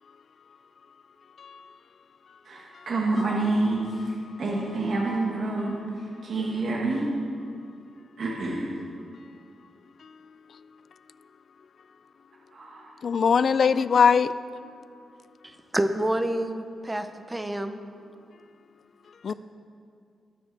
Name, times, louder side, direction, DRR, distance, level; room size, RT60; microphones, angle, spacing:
voice 1, 2.4-7.1 8.2-8.7 12.5-13.0, right 2 dB, 55° right, 1.5 m, -28 dB
voice 2, 13.0-14.3 19.2-19.3, left 6 dB, 55° left, 0.3 m, -21 dB
voice 3, 15.4-17.8 19.3-19.4, right 1 dB, 15° right, 0.6 m, -28 dB
19.5 x 7.6 x 3.4 m
cardioid pair, 120°, 0 cm